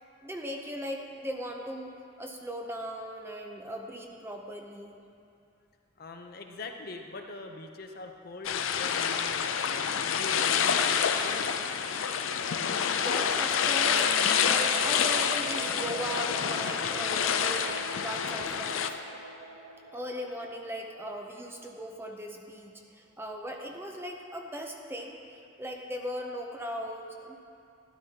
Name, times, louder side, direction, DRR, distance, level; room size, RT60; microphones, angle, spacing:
voice 1, 0.2-5.0 12.9-14.1 14.4-19.0 19.9-25.2 25.6-27.4, equal, 10° right, 2 dB, 0.6 m, -38 dB
voice 2, 6.0-9.3 9.7-11.5, left 3 dB, 50° left, 4 dB, 0.7 m, -43 dB
sound 1, 8.4-18.9, left 7 dB, 90° left, 0.5 m, -27 dB
sound 2, 13.2-21.8, right 1 dB, 85° right, 2.6 m, -43 dB
12.0 x 11.0 x 2.9 m, 2.5 s
head